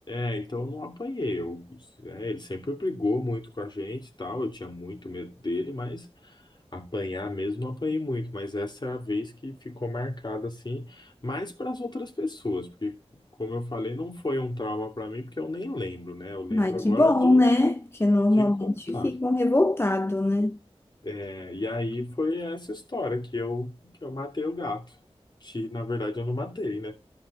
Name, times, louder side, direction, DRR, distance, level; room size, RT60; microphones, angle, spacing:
voice 1, 0.1-6.4 6.7-12.9 13.4-17.4 18.3-19.1 21.0-25.0 25.4-26.9, left 2 dB, 45° left, 2.6 m, -32 dB
voice 2, 16.5-20.6, left 2 dB, 20° left, 0.6 m, -22 dB
13.5 x 5.6 x 3.7 m
wide cardioid pair, 70°, 11 cm